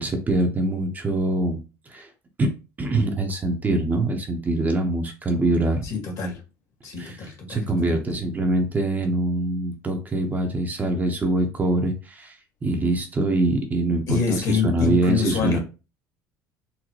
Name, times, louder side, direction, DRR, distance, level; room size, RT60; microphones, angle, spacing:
voice 1, 0.0-1.6 1.9-2.1 2.4-2.5 2.8-5.9 7.0-12.4 12.6-14.2 14.5-15.6, right 2 dB, 25° right, 0.7 m, -24 dB
voice 2, 5.8-6.4 6.8-8.1 14.1-15.6, left 5 dB, 55° left, 1.7 m, -26 dB
4.0 x 2.1 x 3.0 m
cardioid pair, 115°, 7 cm